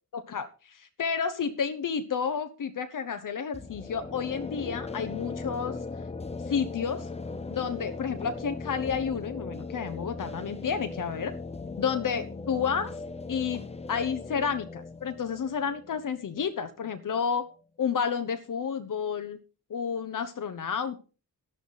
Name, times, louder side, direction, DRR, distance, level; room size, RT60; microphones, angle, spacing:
voice 1, 0.1-5.8 6.5-7.1 7.5-11.3 11.8-12.9 13.3-13.6 13.9-17.5 17.8-19.4 19.7-21.0, left 6 dB, 65° left, 9 dB, 1.1 m, -30 dB
sound 1, 3.5-17.2, left 3 dB, 20° left, 0.7 m, -39 dB
11.5 x 11.0 x 4.1 m, 0.34 s
wide cardioid pair, 110°, 34 cm